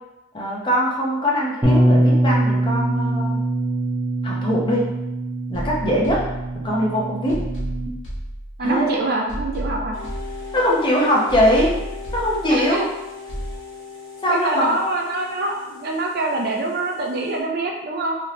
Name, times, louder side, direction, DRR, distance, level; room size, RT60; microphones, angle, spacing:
voice 1, 0.3-3.4 4.2-4.8 5.5-6.2 6.6-7.4 8.6-9.0 10.5-11.7 12.1-12.8 14.2-14.7, equal, 25° left, -3 dB, 0.7 m, -21 dB
Bass guitar, 1.6-7.9, right 1 dB, 10° right, 0.9 m, -22 dB
sound 1, 5.5-6.8 7.3-8.8 9.3-10.8 11.3-12.8 13.3-13.6, right 1 dB, 70° left, 1.3 m, -32 dB
voice 2, 8.6-10.0 12.5-12.8 14.3-18.2, right 2 dB, 55° right, 1 dB, 0.6 m, -25 dB
sound 2, 9.9-17.4, left 5 dB, 80° right, 1.0 m, -38 dB
3.3 x 3.1 x 2.8 m, 0.97 s
head